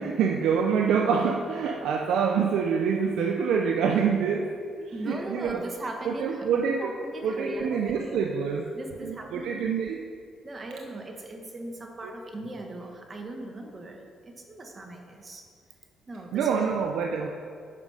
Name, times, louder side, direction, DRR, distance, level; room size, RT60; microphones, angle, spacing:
voice 1, 0.0-5.6 6.0-6.9 7.2-8.7 9.0-10.0 16.3-17.3, right 6 dB, 80° right, 2 dB, 0.5 m, -26 dB
voice 2, 4.9-6.5 6.8-8.2 8.7-9.6 10.4-15.4 16.1-16.6, right 1 dB, 30° right, 3 dB, 1.2 m, -39 dB
8.3 x 5.1 x 5.5 m, 2.2 s
cardioid pair, 90°, 0 cm